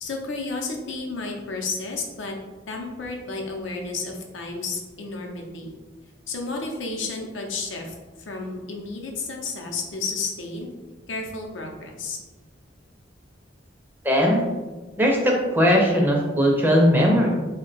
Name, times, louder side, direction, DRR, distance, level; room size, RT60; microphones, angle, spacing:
voice 1, 0.0-2.3 2.7-5.7 6.3-7.9 8.3-10.7 11.1-12.2, left 3 dB, 80° left, 1 dB, 0.6 m, -32 dB
voice 2, 14.0-14.4 15.0-17.3, equal, 10° right, -1 dB, 0.5 m, -19 dB
3.5 x 2.2 x 3.9 m, 1.2 s
head